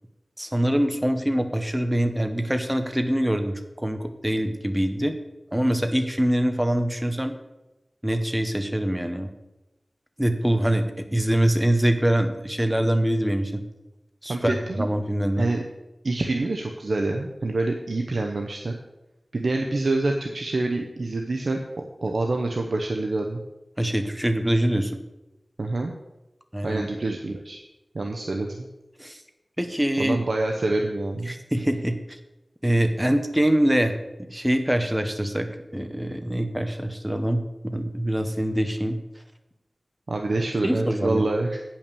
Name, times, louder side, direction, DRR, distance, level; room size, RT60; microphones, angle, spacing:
voice 1, 0.4-5.2 5.5-7.4 8.0-9.3 10.2-13.6 14.2-15.5 23.8-25.0 26.5-26.9 29.0-29.2 29.6-30.2 31.3-32.0 32.6-39.0 40.6-41.2, right 1 dB, 10° right, 7 dB, 1.0 m, -24 dB
voice 2, 14.3-14.9 15.4-15.6 16.0-18.7 19.3-21.6 22.0-23.4 25.6-25.9 26.6-27.6 27.9-28.7 30.0-31.4 40.1-41.6, right 2 dB, 75° right, 2 dB, 0.8 m, -26 dB
9.0 x 5.8 x 6.8 m, 0.98 s
wide cardioid pair, 75°, 0 cm